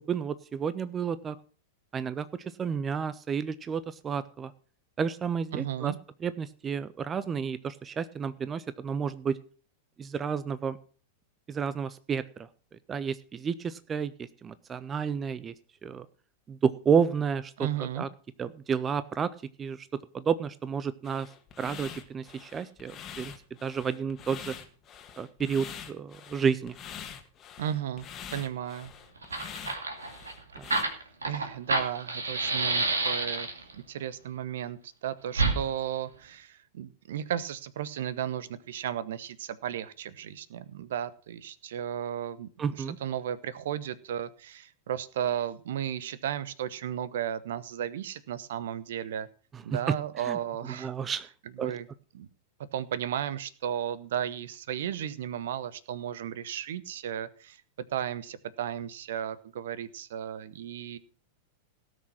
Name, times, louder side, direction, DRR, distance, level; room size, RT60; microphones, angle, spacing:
voice 1, 0.1-1.4 1.9-2.3 2.6-4.5 5.0-5.9 6.2-9.4 10.0-10.8 11.5-12.5 12.9-15.5 15.8-16.1 16.5-18.1 18.4-19.3 19.6-19.9 20.1-21.3 21.6-23.3 23.6-24.5 25.2-26.7 30.6-30.7 42.6-43.0 49.9-50.0 50.2-50.4 50.8-51.3 51.6-51.7, right 6 dB, 20° right, 16 dB, 0.6 m, -31 dB
voice 2, 5.5-6.0 17.6-18.1 27.6-28.1 28.3-28.9 30.7-30.8 31.2-42.5 42.8-49.3 49.6-50.9 51.6-51.9 52.1-52.3 52.7-57.6 57.9-61.0, right 10 dB, 60° right, 18 dB, 0.9 m, -34 dB
sound 1, 21.0-30.8, left 8 dB, 30° left, 1.7 m, -45 dB
Fire, 28.8-28.9 29.2-33.7 35.3-35.6, right 3 dB, 75° right, 2.3 m, -29 dB
17.5 x 6.3 x 5.8 m, 0.40 s
figure-of-eight pair, 95°, 0 cm